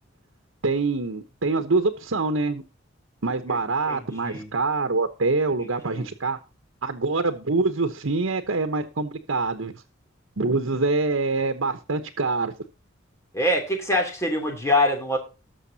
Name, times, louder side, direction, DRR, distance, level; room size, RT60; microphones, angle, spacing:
voice 1, 0.6-2.6 3.2-6.4 6.8-9.7 10.4-12.5, right 3 dB, 85° right, 7 dB, 1.0 m, -25 dB
voice 2, 3.9-4.5 5.9-6.1 13.3-15.2, left 1 dB, 15° left, 3 dB, 3.1 m, -24 dB
19.0 x 6.6 x 2.8 m, 0.31 s
head